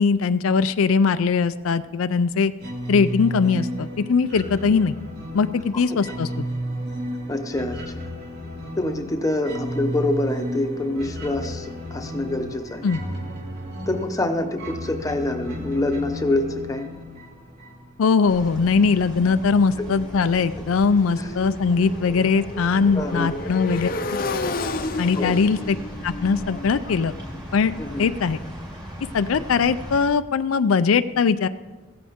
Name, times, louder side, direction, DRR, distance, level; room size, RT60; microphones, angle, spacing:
voice 1, 0.0-2.5 2.9-5.0 5.3-6.4 12.8-13.0 18.0-24.2 25.0-25.8 26.0-27.2 27.5-27.7 28.0-28.4 29.1-31.5, left 5 dB, 80° left, 12 dB, 0.4 m, -21 dB
sound 1, 2.6-18.1, equal, 50° right, 2.3 m, -33 dB
voice 2, 7.3-8.0 8.8-12.8 13.9-16.9 19.8-19.9 21.2-21.3 22.9-23.3 25.2-25.4 27.8-28.0, left 2 dB, 15° left, 5 dB, 0.9 m, -26 dB
sound 2, 18.3-30.1, equal, 20° right, 2.2 m, -38 dB
Motorcycle, 18.8-28.7, left 2 dB, 45° left, 0.7 m, -33 dB
16.0 x 13.5 x 3.6 m, 1.2 s
head